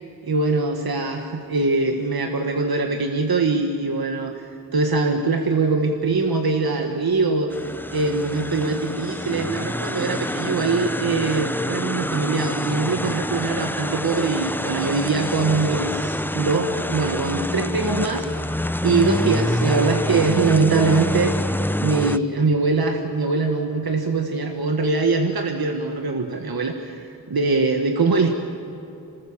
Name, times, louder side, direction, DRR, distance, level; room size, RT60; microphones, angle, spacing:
voice 1, 0.2-7.5 7.9-18.3 18.8-28.3, right 3 dB, 75° right, 3 dB, 1.6 m, -22 dB
sound 1, 7.5-22.2, left 1 dB, 5° left, 0.6 m, -27 dB
27.0 x 19.5 x 7.3 m, 2.8 s
wide cardioid pair, 90°, 36 cm